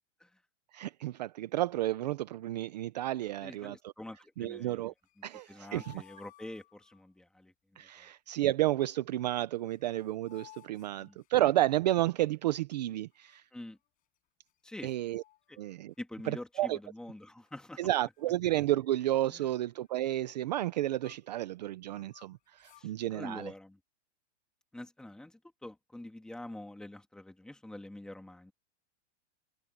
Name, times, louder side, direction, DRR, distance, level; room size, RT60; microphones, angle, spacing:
voice 1, 0.7-3.9 4.4-4.9 5.2-5.9 7.8-13.4 14.8-15.2 15.6-15.9 16.3-16.8 17.8-23.5, right 15 dB, 35° right, 0.5 m, -31 dB
voice 2, 3.4-4.9 5.5-7.5 8.0-8.1 11.0-11.2 13.5-13.8 14.6-14.9 15.5-15.6 16.0-17.8 19.3-19.4 22.8-23.8 24.7-28.5, left 1 dB, ahead, 1.7 m, -46 dB
sound 1, 5.0-7.0 9.2-9.3 9.5-11.8 13.1-13.9 14.5-14.6 14.9-16.0 16.3-16.6 17.2-17.8 18.1-18.3 18.6-21.4 21.8-22.9, left 15 dB, 20° left, 7.6 m, -60 dB
supercardioid pair, 175°, 36 cm